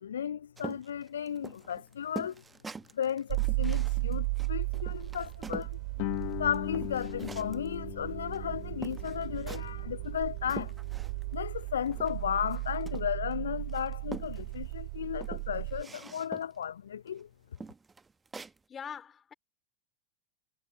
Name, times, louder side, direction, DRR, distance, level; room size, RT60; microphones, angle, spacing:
voice 1, 0.0-2.4 3.0-5.8 6.4-10.7 11.3-17.3, left 8 dB, 70° left, 0.4 m, -34 dB
sound 1, 0.6-5.8 6.2-7.7 8.3-8.4 8.8-9.8 10.2-11.3 11.6-13.3 13.7-14.7 15.1-16.6 17.1-17.2 17.6-18.6, right 4 dB, 15° right, 1.2 m, -45 dB
sound 2, 3.3-15.8, right 30 dB, 50° right, 3.8 m, -35 dB
Guitar, 6.0-11.3, left 35 dB, 50° left, 1.0 m, -40 dB
voice 2, 18.7-19.3, left 7 dB, 25° left, 4.1 m, -42 dB
figure-of-eight pair, 90°, 0 cm